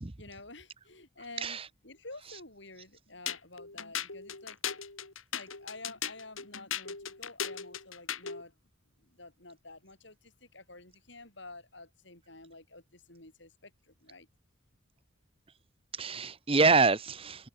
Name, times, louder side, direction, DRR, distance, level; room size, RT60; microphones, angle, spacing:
voice 1, 0.2-4.6 5.3-8.6 9.0-14.3, left 2 dB, 60° left, 8.0 m, -50 dB
sound 1, 3.3-8.4, left 8 dB, 80° left, 5.1 m, -38 dB
voice 2, 15.9-17.5, right 4 dB, 30° right, 0.9 m, -26 dB
head